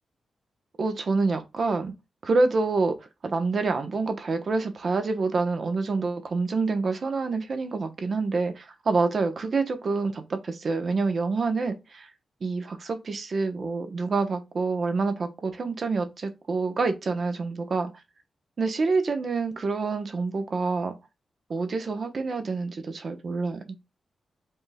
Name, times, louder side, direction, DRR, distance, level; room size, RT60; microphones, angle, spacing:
voice 1, 0.8-1.9 2.2-2.9 3.2-12.1 12.4-17.9 18.6-21.0 21.5-23.6, right 3 dB, 50° right, 1.0 m, -27 dB
5.4 x 3.7 x 2.3 m
wide cardioid pair, 105°, 0 cm